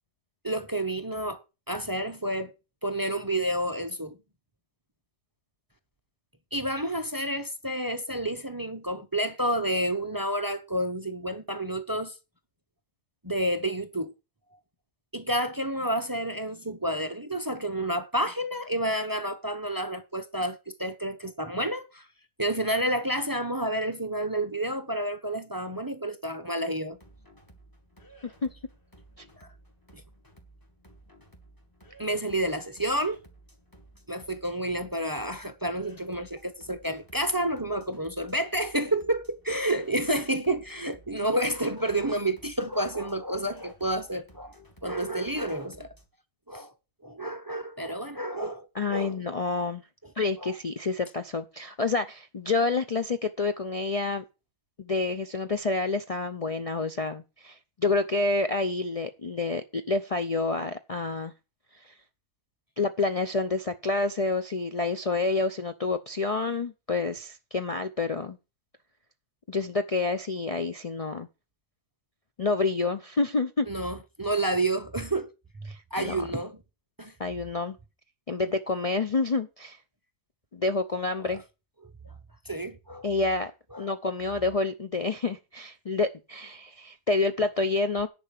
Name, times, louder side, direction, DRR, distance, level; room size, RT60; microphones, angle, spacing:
voice 1, 0.4-1.4 1.7-2.5 2.8-4.2 6.5-12.2 13.2-14.1 15.1-22.1 22.4-27.0 29.4-29.5 29.9-30.0 32.0-33.2 34.1-44.5 44.8-45.9 46.5-46.7 47.0-49.2 50.4-50.5 73.7-75.3 75.6-76.6 77.0-77.1 81.2-81.3 82.0-82.1 82.4-83.1 83.7-83.9, right 1 dB, 20° right, 0.6 m, -30 dB
sound 1, 26.9-46.1, right 1 dB, 15° left, 1.9 m, -55 dB
voice 2, 48.7-49.8 50.2-54.2 54.8-61.3 61.8-61.9 62.8-68.4 69.5-71.3 72.4-73.7 75.7-76.2 77.2-77.8 78.3-79.8 80.5-81.4 83.0-83.5 83.8-88.1, left 3 dB, 70° left, 0.3 m, -28 dB
10.5 x 5.3 x 7.4 m
omnidirectional pair, 1.7 m